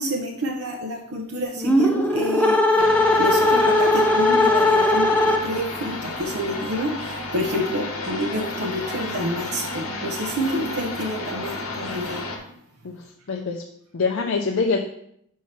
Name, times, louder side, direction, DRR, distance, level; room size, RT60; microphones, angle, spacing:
voice 1, 0.0-2.8 3.2-12.3, equal, 80° right, 1 dB, 0.7 m, -28 dB
sound 1, 1.6-5.8, left 1 dB, 5° left, 0.5 m, -19 dB
sound 2, 2.8-12.4, left 2 dB, 80° left, 1.1 m, -32 dB
voice 2, 13.3-13.6 13.9-14.8, left 4 dB, 65° left, 2 dB, 0.5 m, -24 dB
4.6 x 4.5 x 5.8 m, 0.73 s
head